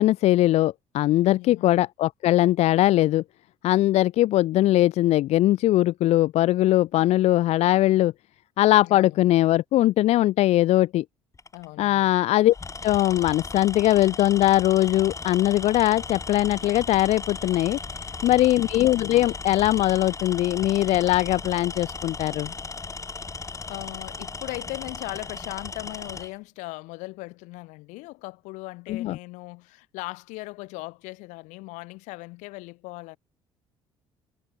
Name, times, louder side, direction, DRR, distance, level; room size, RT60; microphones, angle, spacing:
voice 1, 0.0-3.2 3.6-8.1 8.6-11.0 11.8-12.5 12.8-17.8 18.2-22.5 28.9-29.2, left 15 dB, 60° left, 0.4 m, -21 dB
voice 2, 1.4-1.8 8.8-9.3 11.5-12.1 18.3-18.7 23.3-33.2, left 23 dB, 75° left, 3.2 m, -39 dB
Tools, 11.3-11.6 12.5-26.3, left 4 dB, 25° left, 2.2 m, -36 dB
hypercardioid pair, 55°, 13 cm